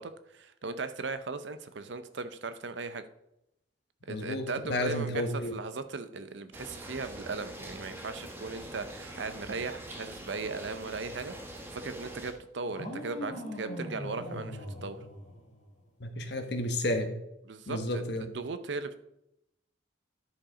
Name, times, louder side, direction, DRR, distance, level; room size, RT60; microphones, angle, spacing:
voice 1, 0.0-3.0 4.0-5.3 5.5-11.3 11.7-15.0 17.5-19.0, right 4 dB, 65° right, 11 dB, 0.6 m, -38 dB
voice 2, 4.1-5.5 16.0-17.2 17.7-18.3, left 1 dB, 55° left, 6 dB, 1.2 m, -32 dB
sound 1, 6.5-12.3, right 1 dB, 10° right, 1.0 m, -44 dB
sound 2, 12.7-15.8, equal, 40° left, 2.0 m, -40 dB
10.5 x 4.9 x 4.9 m, 0.84 s
head